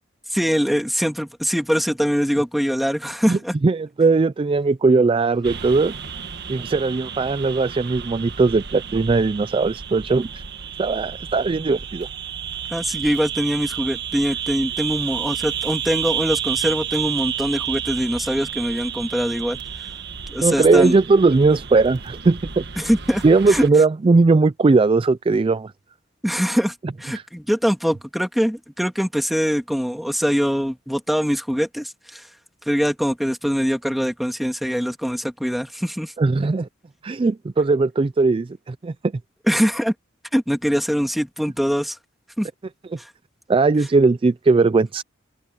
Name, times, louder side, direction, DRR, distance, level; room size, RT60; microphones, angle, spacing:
voice 1, 0.3-3.5 12.7-19.6 20.3-21.0 22.8-23.2 23.5-23.7 26.2-32.3 32.7-36.1 39.5-39.9 40.3-42.0 42.4-42.5 43.0-43.1, equal, ahead, 2.8 m, -23 dB
voice 2, 3.3-5.9 6.5-10.3 10.8-12.1 20.4-22.6 23.2-25.7 27.1-27.2 36.2-36.7 37.0-38.9 43.5-45.0, right 3 dB, 25° right, 0.3 m, -18 dB
sound 1, 5.4-23.7, right 8 dB, 60° right, 1.6 m, -31 dB
open air
head